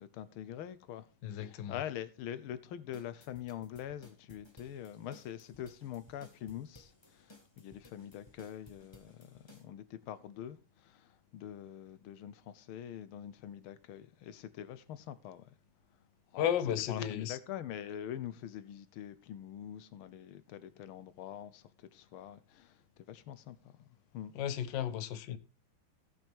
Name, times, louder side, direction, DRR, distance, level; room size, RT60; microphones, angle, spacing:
voice 1, 0.0-15.5 16.3-16.5 16.9-24.3, left 10 dB, 85° left, 1.6 m, -44 dB
voice 2, 1.2-1.8 16.4-17.4 24.3-25.4, left 10 dB, 65° left, 1.4 m, -34 dB
sound 1, 2.9-9.6, left 2 dB, 15° left, 1.3 m, -59 dB
17.0 x 6.1 x 3.5 m
omnidirectional pair, 2.3 m